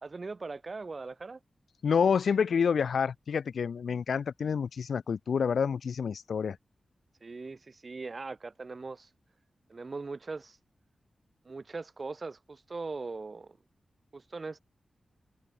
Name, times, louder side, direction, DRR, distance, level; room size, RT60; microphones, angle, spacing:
voice 1, 0.0-1.4 7.2-9.1 9.7-10.6 11.4-13.6 14.1-14.6, right 3 dB, 40° right, 1.7 m, -40 dB
voice 2, 1.8-6.6, left 6 dB, 80° left, 1.0 m, -28 dB
wide cardioid pair, 105°, 0 cm